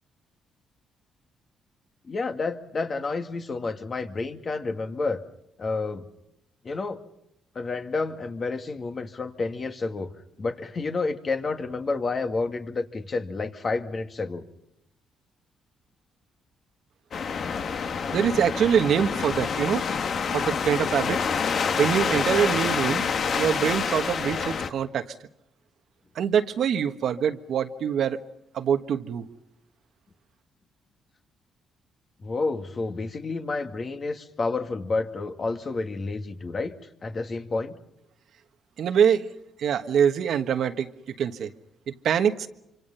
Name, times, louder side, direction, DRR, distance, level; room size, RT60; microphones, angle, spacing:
voice 1, 2.1-5.2 5.6-6.0 6.6-7.0 7.6-10.1 10.4-14.4 32.2-36.7 37.0-37.8, left 3 dB, 40° left, 6 dB, 2.2 m, -30 dB
sound 1, 17.1-24.7, left 6 dB, 55° left, 1.6 m, -27 dB
voice 2, 18.1-19.9 20.3-21.2 21.8-23.1 23.4-25.1 26.1-28.2 28.5-29.2 38.8-39.2 39.6-40.9 41.2-41.5 41.9-42.5, right 8 dB, 70° right, 8 dB, 1.4 m, -24 dB
26.5 x 26.0 x 5.7 m, 0.82 s
cardioid pair, 90°, 0 cm